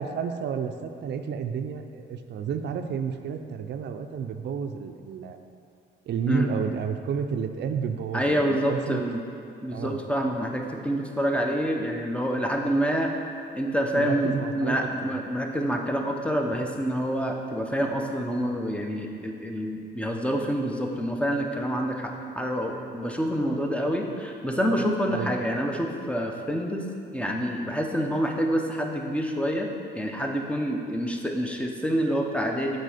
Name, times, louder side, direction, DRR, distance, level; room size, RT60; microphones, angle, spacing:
voice 1, 0.0-5.4 6.1-9.0 9.7-10.0 13.9-15.1 25.1-25.3, right 6 dB, 60° right, 7 dB, 0.5 m, -31 dB
voice 2, 8.1-9.2 9.6-13.1 13.5-26.8 27.1-32.8, equal, 5° left, 2 dB, 0.7 m, -27 dB
6.6 x 4.4 x 4.9 m, 2.5 s
cardioid pair, 90°, 20 cm